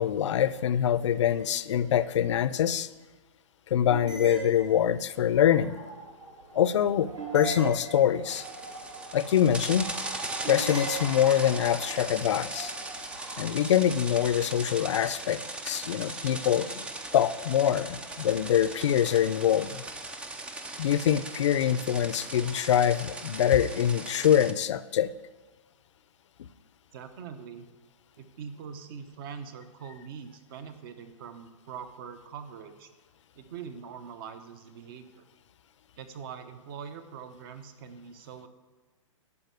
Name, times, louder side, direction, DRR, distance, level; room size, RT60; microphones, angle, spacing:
voice 1, 0.0-2.9 3.7-5.8 6.5-8.4 9.1-9.9 10.5-12.7 13.4-15.4 15.7-16.8 17.1-19.8 20.8-25.1, left 10 dB, 65° left, 15 dB, 0.6 m, -24 dB
sound 1, 1.4-1.9 3.9-5.2 7.2-8.5 10.4-11.7, right 3 dB, 65° right, 3.2 m, -40 dB
sound 2, 5.3-15.0, right 3 dB, 90° right, 2.8 m, -43 dB
sound 3, 8.3-24.5, right 2 dB, 5° right, 0.4 m, -39 dB
voice 2, 26.9-27.7 28.2-32.9 33.3-35.2 36.0-38.5, right 7 dB, 45° right, 9 dB, 1.0 m, -43 dB
10.5 x 5.7 x 8.2 m, 1.2 s
hypercardioid pair, 145°, 17 cm